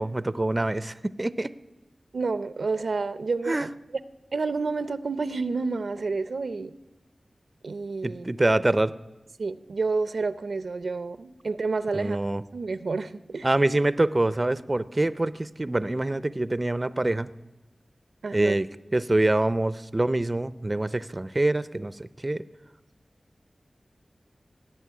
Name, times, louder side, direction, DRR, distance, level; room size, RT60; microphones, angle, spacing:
voice 1, 0.0-1.5 3.5-3.7 8.0-8.9 11.9-12.4 13.4-17.3 18.3-18.7 18.9-21.9 22.2-22.4, right 2 dB, 30° right, 15 dB, 0.4 m, -25 dB
voice 2, 2.1-3.7 4.3-6.7 7.6-8.3 9.4-12.2 12.5-13.5 18.2-18.6, right 4 dB, 85° right, 13 dB, 0.6 m, -29 dB
17.5 x 7.7 x 9.6 m, 1.0 s
wide cardioid pair, 70°, 0 cm